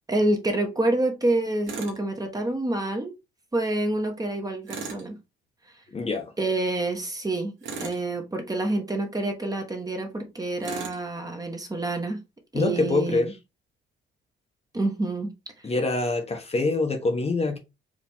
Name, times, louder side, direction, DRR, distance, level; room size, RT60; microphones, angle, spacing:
voice 1, 0.1-3.1 3.5-5.2 6.4-12.2 12.5-13.3 14.7-15.3, right 2 dB, 20° right, 1.3 m, -27 dB
Tools, 1.7-2.0 4.7-5.1 7.6-8.1 10.6-11.0, right 5 dB, 80° right, 1.6 m, -36 dB
voice 2, 5.9-6.3 12.5-13.3 15.6-17.6, left 3 dB, 30° left, 1.1 m, -25 dB
5.0 x 2.9 x 3.6 m
cardioid pair, 90°, 20 cm